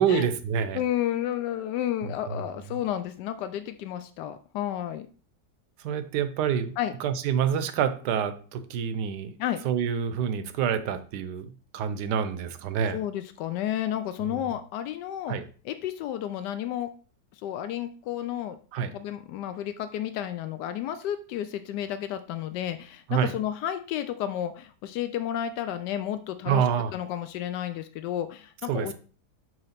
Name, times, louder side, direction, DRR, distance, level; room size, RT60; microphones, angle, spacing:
voice 1, 0.0-0.8 2.0-2.4 5.8-6.7 7.0-9.4 9.6-13.0 14.3-14.4 15.3-15.4 18.7-18.9 23.1-23.3 26.5-26.9 28.7-28.9, right 8 dB, 80° right, 11 dB, 1.3 m, -27 dB
voice 2, 0.7-5.1 6.8-6.9 9.4-9.6 12.9-15.4 15.6-16.9 17.4-18.6 18.9-26.6 26.9-28.9, left 11 dB, 90° left, 10 dB, 1.2 m, -31 dB
7.6 x 3.1 x 5.7 m, 0.39 s
omnidirectional pair, 1.8 m